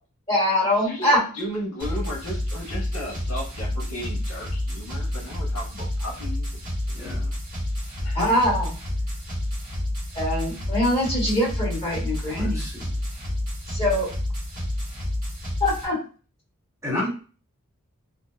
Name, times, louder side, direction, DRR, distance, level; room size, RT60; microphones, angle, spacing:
voice 1, 0.3-1.2 8.1-8.7 10.1-12.6 13.7-14.1 15.6-16.0, left 1 dB, 25° left, -6 dB, 1.5 m, -23 dB
voice 2, 0.8-6.6 8.0-8.2, equal, 85° left, -1 dB, 0.9 m, -35 dB
sound 1, 1.8-15.8, left 1 dB, 40° right, 1.0 m, -29 dB
voice 3, 6.9-7.3 12.4-12.7 16.8-17.1, left 2 dB, 15° right, -5 dB, 0.8 m, -30 dB
2.7 x 2.1 x 2.2 m, 0.36 s
head